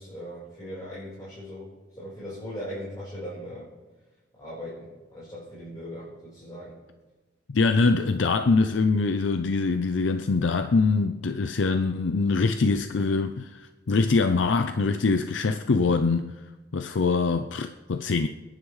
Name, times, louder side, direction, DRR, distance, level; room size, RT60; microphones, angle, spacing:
voice 1, 0.0-3.7 4.4-6.8, equal, 20° left, 4.6 m, -39 dB
voice 2, 7.5-16.3 16.7-18.3, left 4 dB, 85° left, 0.6 m, -23 dB
29.5 x 10.5 x 3.2 m
head